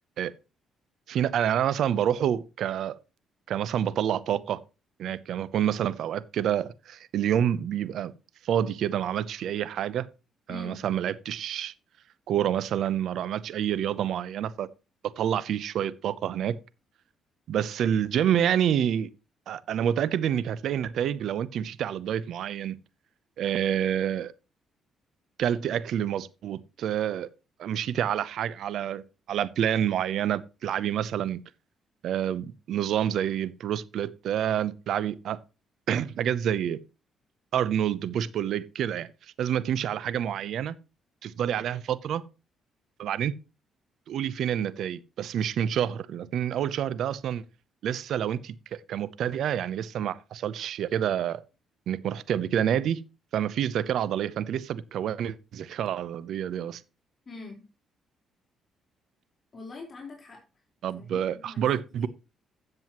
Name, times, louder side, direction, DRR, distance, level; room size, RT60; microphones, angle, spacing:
voice 1, 1.1-3.0 3.5-4.6 5.0-8.1 8.4-10.1 10.5-11.7 12.3-14.7 15.2-16.6 17.5-19.1 19.5-22.8 23.4-24.3 25.4-27.3 27.6-31.4 32.0-35.4 35.9-36.8 37.5-39.1 39.4-40.8 41.2-42.2 43.0-43.3 44.1-47.4 47.8-51.4 51.9-53.0 53.3-56.8 60.8-62.1, right 10 dB, 70° right, 0.7 m, -28 dB
voice 2, 10.5-10.9 57.3-57.7 59.5-60.4 60.9-62.1, left 3 dB, 40° left, 4.1 m, -44 dB
13.5 x 7.7 x 3.0 m
supercardioid pair, 70°, 0 cm